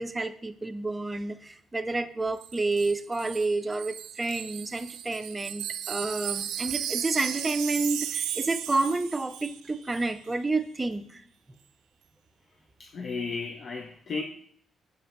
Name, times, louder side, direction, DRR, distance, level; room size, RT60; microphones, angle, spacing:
voice 1, 0.0-11.2, right 3 dB, 20° right, 0.5 m, -30 dB
Wind chime, 2.4-9.6 9.9-10.1, right 10 dB, 85° right, 0.3 m, -35 dB
voice 2, 12.8-14.2, left 4 dB, 50° left, 0.6 m, -34 dB
6.4 x 5.0 x 3.0 m
cardioid pair, 90°, 0 cm